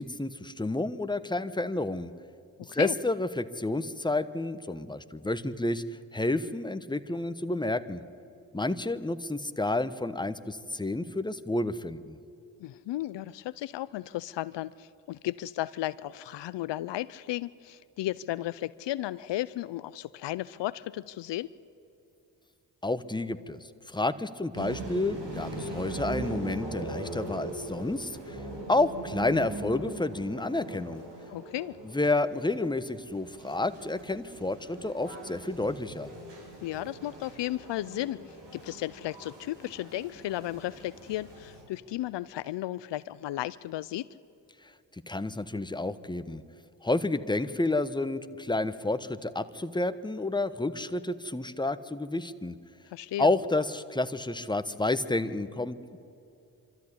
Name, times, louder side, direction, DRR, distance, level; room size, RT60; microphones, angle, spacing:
voice 1, 0.0-2.1 2.7-5.8 6.1-8.0 8.5-12.2 22.8-28.4 28.7-31.0 31.8-36.1 45.1-46.4 46.8-52.5 53.2-55.8, left 2 dB, 10° left, 12 dB, 1.1 m, -30 dB
voice 2, 2.6-3.0 12.6-21.5 31.3-31.8 36.6-44.1 52.9-53.3, left 15 dB, 70° left, 17 dB, 0.6 m, -34 dB
sound 1, 24.5-41.6, right 2 dB, 70° right, 4.9 m, -41 dB
24.5 x 13.5 x 9.9 m, 2.6 s
supercardioid pair, 40°, 44 cm